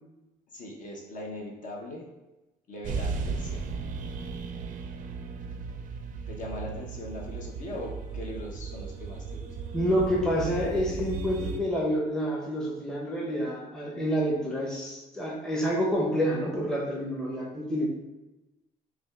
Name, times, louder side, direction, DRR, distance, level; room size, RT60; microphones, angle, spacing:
voice 1, 0.5-2.1 2.7-3.7 4.0-4.4 6.3-9.5, left 1 dB, 50° left, -1 dB, 0.8 m, -40 dB
sound 1, 2.8-11.6, right 5 dB, 50° right, 0.4 m, -36 dB
voice 2, 9.7-17.9, equal, 5° left, -3 dB, 0.7 m, -28 dB
6.0 x 2.3 x 2.3 m, 1.0 s
cardioid pair, 110°, 17 cm